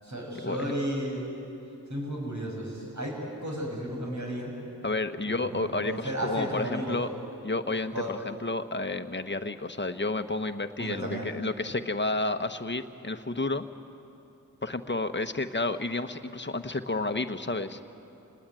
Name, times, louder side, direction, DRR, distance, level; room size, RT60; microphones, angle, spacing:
voice 1, 0.0-1.2 1.9-3.2 3.4-4.5 5.3-7.0 7.9-8.1 10.8-11.3, right 1 dB, 55° right, -1 dB, 7.1 m, -33 dB
voice 2, 4.8-7.1 7.4-13.7 14.6-17.8, left 2 dB, 30° left, 8 dB, 1.2 m, -31 dB
28.0 x 19.5 x 9.1 m, 2.9 s
wide cardioid pair, 60°, 35 cm